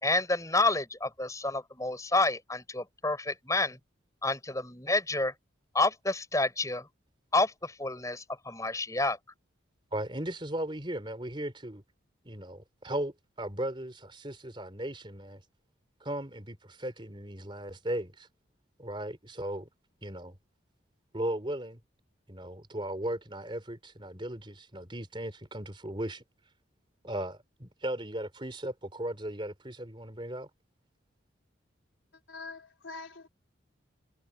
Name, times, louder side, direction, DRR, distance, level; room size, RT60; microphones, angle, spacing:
voice 1, 0.0-3.8 4.2-5.3 5.7-6.9 7.3-9.2, left 2 dB, 15° left, 6.4 m, -29 dB
voice 2, 9.9-11.8 12.3-15.4 16.0-18.3 18.8-19.7 20.0-20.4 21.1-21.8 22.3-26.2 27.0-30.5, right 1 dB, 25° right, 3.6 m, -37 dB
voice 3, 32.3-33.3, left 3 dB, 75° left, 4.0 m, -44 dB
head